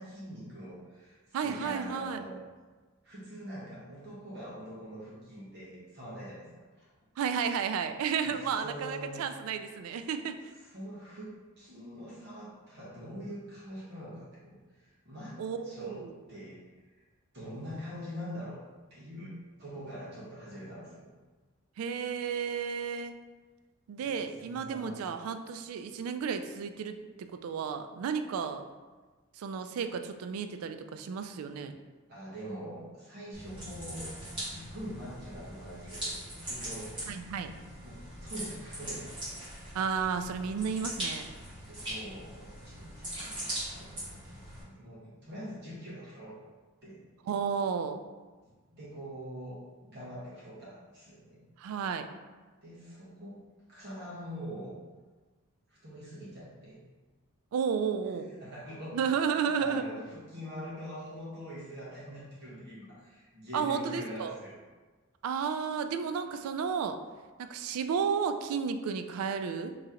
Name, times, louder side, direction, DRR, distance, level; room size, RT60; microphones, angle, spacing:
voice 1, 0.0-2.3 3.0-6.5 8.2-8.3 8.6-9.2 10.6-16.0 16.3-16.6 16.9-17.0 17.3-18.6 18.9-21.1 24.0-24.1 24.4-25.0 32.1-36.9 37.8-39.1 41.6-46.4 46.8-47.0 48.4-51.4 52.6-53.4 53.7-54.7 55.7-56.8 58.4-59.2 59.6-64.6, equal, 50° right, -8 dB, 1.2 m, -44 dB
voice 2, 1.3-2.2 7.2-10.4 15.4-16.1 21.8-23.2 23.9-28.6 29.4-31.7 37.1-37.5 39.7-41.3 47.3-48.0 51.6-52.1 57.5-58.3 58.9-59.8 63.5-64.4 65.2-67.0 67.4-69.7, right 6 dB, 85° right, 11 dB, 0.3 m, -32 dB
sound 1, 33.3-44.6, right 1 dB, 25° right, 1.5 m, -41 dB
3.1 x 2.8 x 3.6 m, 1.3 s
head